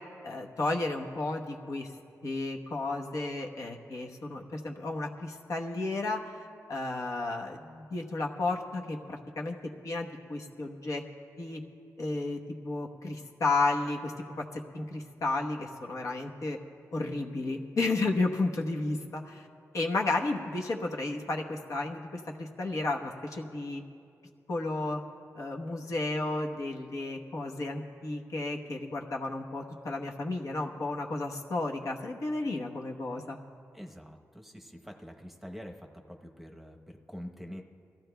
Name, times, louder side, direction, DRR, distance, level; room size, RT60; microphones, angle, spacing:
voice 1, 0.2-1.9 2.2-6.4 6.7-9.6 9.8-11.0 11.4-11.6 12.0-16.6 16.9-19.5 19.7-23.8 24.5-25.0 25.3-33.4, left 2 dB, 65° left, 1 dB, 1.0 m, -33 dB
voice 2, 33.7-37.6, equal, 5° right, 2 dB, 0.9 m, -45 dB
22.0 x 15.0 x 2.3 m, 2.4 s
wide cardioid pair, 100°, 6 cm